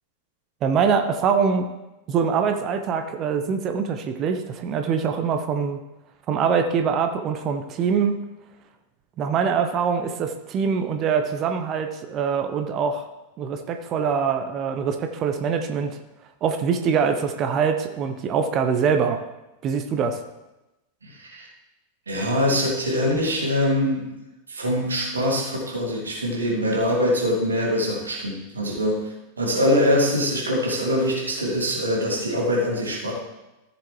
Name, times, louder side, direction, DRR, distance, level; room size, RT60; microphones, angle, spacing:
voice 1, 0.6-1.7 2.1-5.8 6.3-8.2 9.2-13.1 13.4-16.0 16.4-19.2 19.6-20.2, right 6 dB, 35° right, 6 dB, 0.8 m, -23 dB
voice 2, 21.0-21.5 22.1-24.1 24.5-33.1, equal, 75° right, -2 dB, 2.5 m, -23 dB
14.5 x 7.0 x 3.2 m, 1.0 s
figure-of-eight pair, 90°, 0 cm